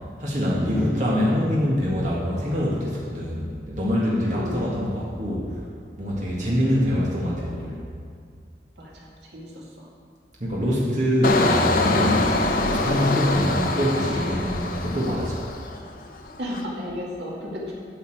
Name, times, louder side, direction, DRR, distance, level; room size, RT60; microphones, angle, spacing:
voice 1, 0.2-5.6 6.0-7.8 10.4-12.3 12.6-15.5, equal, 45° right, -6 dB, 1.9 m, -24 dB
voice 2, 4.2-4.6 6.4-6.5 8.8-9.1 9.3-9.9 16.4-17.7, left 1 dB, 75° right, -4 dB, 2.2 m, -33 dB
Engine, 11.2-15.9 16.3-16.6, left 2 dB, 50° left, 0.7 m, -24 dB
10.0 x 5.6 x 7.9 m, 2.2 s
head